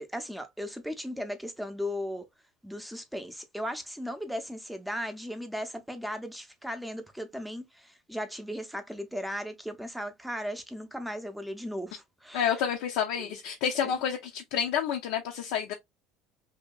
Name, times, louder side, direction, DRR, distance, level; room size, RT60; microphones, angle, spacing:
voice 1, 0.0-2.2 2.6-12.6 13.2-13.4 13.8-13.9, equal, ahead, 0.6 m, -37 dB
voice 2, 12.3-15.7, left 8 dB, 80° left, 0.5 m, -29 dB
2.8 x 2.7 x 2.2 m
cardioid pair, 120°, 0 cm